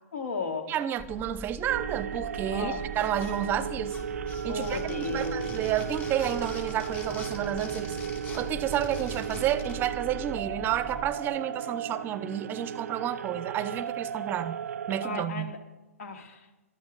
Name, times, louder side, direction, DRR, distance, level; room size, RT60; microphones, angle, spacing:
voice 1, 0.1-0.7 2.5-2.9 4.5-5.5 15.0-15.6 16.0-16.5, left 3 dB, 70° left, 3.2 m, -34 dB
voice 2, 0.7-3.9 4.4-8.0 8.3-14.6 14.9-15.5, right 10 dB, 25° right, 0.7 m, -31 dB
sound 1, 1.0-11.1, right 1 dB, ahead, 1.8 m, -43 dB
sound 2, 1.7-15.3, right 8 dB, 75° right, 0.4 m, -35 dB
sound 3, 2.9-3.6 3.8-9.8, left 4 dB, 20° left, 7.3 m, -44 dB
22.0 x 13.0 x 4.0 m
hypercardioid pair, 125°, 8 cm